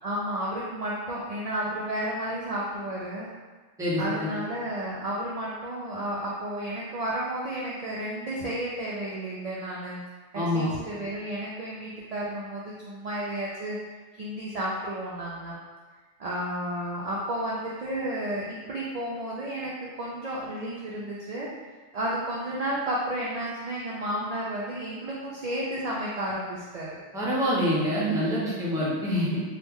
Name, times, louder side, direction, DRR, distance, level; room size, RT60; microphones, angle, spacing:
voice 1, 0.0-3.3 4.0-10.0 10.3-13.8 14.2-15.5 16.2-19.7 20.0-21.5 21.9-27.0, right 1 dB, 65° right, -6 dB, 0.3 m, -32 dB
voice 2, 3.8-4.3 10.3-10.7 27.1-29.4, equal, 5° right, -7 dB, 0.5 m, -26 dB
3.1 x 2.3 x 3.5 m, 1.3 s
omnidirectional pair, 1.2 m